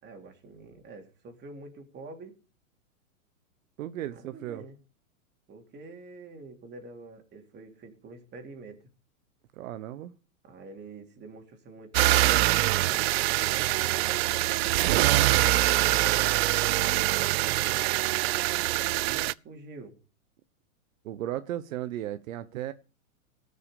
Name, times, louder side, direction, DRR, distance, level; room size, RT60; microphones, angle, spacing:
voice 1, 0.0-2.4 4.1-4.8 5.5-8.8 10.4-13.0 13.7-17.0 18.7-19.9, right 3 dB, 25° right, 3.6 m, -46 dB
voice 2, 3.8-4.6 9.5-10.1 21.0-22.7, right 12 dB, 65° right, 1.1 m, -35 dB
sound 1, 11.9-19.3, right 18 dB, 45° right, 0.6 m, -24 dB
18.5 x 6.7 x 6.8 m
hypercardioid pair, 130°, 42 cm